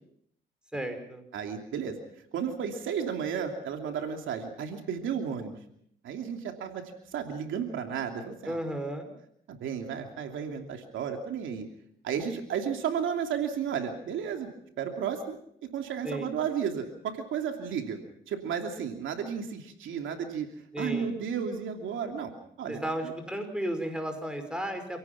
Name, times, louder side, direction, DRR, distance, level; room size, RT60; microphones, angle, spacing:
voice 1, 0.7-1.2 8.5-9.1 16.0-16.3 20.7-21.1 22.7-25.0, right 1 dB, 5° right, 6 dB, 5.4 m, -34 dB
voice 2, 1.3-2.0 2.3-5.6 6.0-8.6 9.5-11.7 12.0-14.5 14.8-18.0 18.3-20.5 20.8-22.3 22.6-23.1, right 7 dB, 80° right, 4 dB, 2.9 m, -33 dB
28.0 x 17.5 x 6.0 m, 0.68 s
cardioid pair, 90°, 20 cm